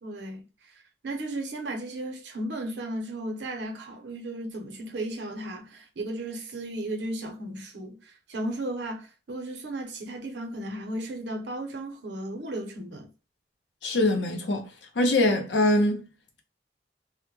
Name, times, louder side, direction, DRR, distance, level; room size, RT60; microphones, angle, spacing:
voice 1, 0.0-13.1, right 1 dB, 75° right, 0.7 m, -35 dB
voice 2, 13.8-14.6 15.0-16.0, left 1 dB, 80° left, 0.6 m, -23 dB
2.1 x 2.1 x 3.0 m
head